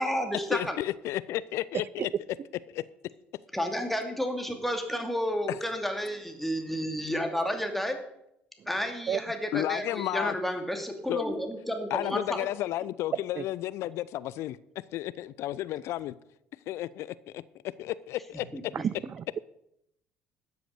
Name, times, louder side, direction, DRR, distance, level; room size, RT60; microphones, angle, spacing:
voice 1, 0.0-0.8 3.5-8.0 8.7-12.4 18.5-18.9, equal, 5° left, 4 dB, 2.6 m, -31 dB
voice 2, 0.5-2.1 9.5-10.3 11.1-11.2 11.9-14.6 14.9-16.1 16.7-17.4 17.8-18.5, left 14 dB, 55° left, 19 dB, 0.5 m, -32 dB
voice 3, 18.7-19.4, right 8 dB, 40° right, 21 dB, 0.5 m, -31 dB
13.0 x 7.8 x 6.6 m, 0.80 s
figure-of-eight pair, 55°, 5 cm